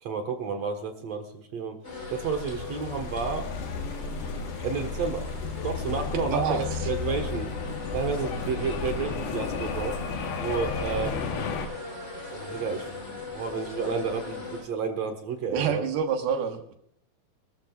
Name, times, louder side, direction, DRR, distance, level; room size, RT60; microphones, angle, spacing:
voice 1, 0.0-1.8 2.1-3.5 4.6-5.3 5.6-7.5 7.9-10.0 10.4-11.3 12.3-15.8, right 5 dB, 60° right, 5 dB, 2.0 m, -31 dB
sound 1, 1.8-14.6, left 3 dB, 30° left, 3.8 m, -40 dB
sound 2, 1.9-11.7, left 4 dB, 70° left, 3.1 m, -33 dB
voice 2, 6.3-6.9 15.5-16.7, right 7 dB, 80° right, 4 dB, 3.3 m, -28 dB
21.5 x 13.5 x 2.4 m, 0.70 s
omnidirectional pair, 4.4 m